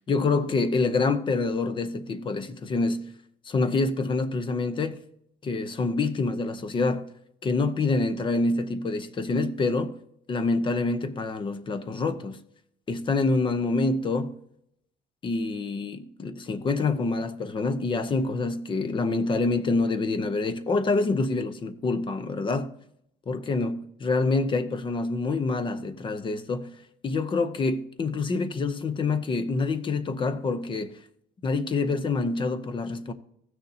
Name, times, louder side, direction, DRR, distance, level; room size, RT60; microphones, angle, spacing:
voice 1, 0.0-3.1 3.4-5.0 5.4-7.1 7.4-10.0 10.3-12.4 12.9-14.4 15.2-22.7 23.3-31.0 31.4-33.1, left 3 dB, 25° left, 0.7 m, -26 dB
16.0 x 6.6 x 2.8 m
cardioid pair, 155°, 18 cm